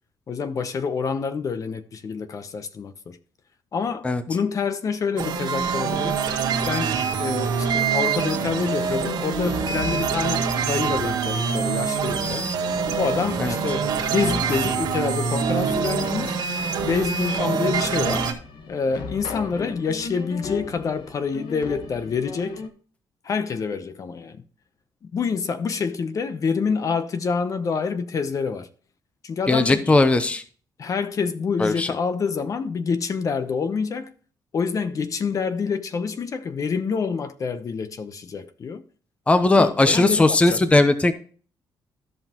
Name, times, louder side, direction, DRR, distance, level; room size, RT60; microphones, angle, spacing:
voice 1, 0.3-3.2 3.7-6.2 6.6-12.5 13.0-16.4 16.8-18.3 18.7-22.6 23.2-24.4 25.0-28.7 29.2-29.9 30.8-34.1 34.5-38.8 39.6-40.6, left 5 dB, 45° left, 0.9 m, -27 dB
sound 1, 5.2-18.3, right 6 dB, 75° right, 1.8 m, -25 dB
sound 2, 9.4-22.7, left 4 dB, 75° left, 1.3 m, -38 dB
voice 2, 29.5-30.4 31.6-31.9 39.3-41.1, left 2 dB, 15° left, 0.7 m, -18 dB
13.5 x 5.5 x 3.0 m
cardioid pair, 105°, 8 cm